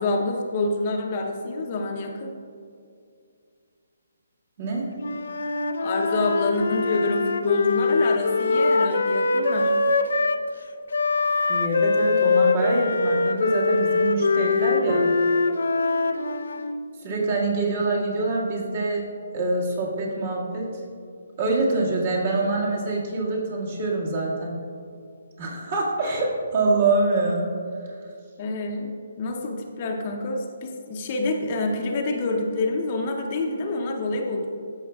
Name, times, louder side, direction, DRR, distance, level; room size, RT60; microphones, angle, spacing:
voice 1, 0.0-2.4 5.8-9.8 28.4-28.9 29.2-34.5, left 2 dB, 35° left, 2 dB, 0.7 m, -27 dB
Wind instrument woodwind instrument, 5.0-10.4 10.9-16.8, left 3 dB, 75° left, 0.5 m, -23 dB
voice 2, 11.5-15.1 17.0-19.1 19.3-20.7 21.4-24.5 25.4-27.5, right 2 dB, 45° right, -3 dB, 1.9 m, -25 dB
13.5 x 5.7 x 2.3 m, 2.3 s
hypercardioid pair, 165°, 0 cm